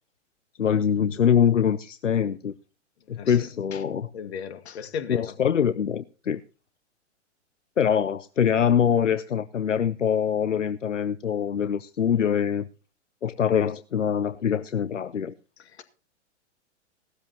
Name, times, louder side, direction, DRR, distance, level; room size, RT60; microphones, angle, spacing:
voice 1, 0.6-2.5 3.1-4.1 5.1-6.4 7.8-12.7 13.2-15.3, left 8 dB, 85° left, 0.6 m, -24 dB
voice 2, 4.1-5.3 15.8-15.9, left 7 dB, 60° left, 2.0 m, -35 dB
17.5 x 13.0 x 2.8 m
figure-of-eight pair, 110°, 36 cm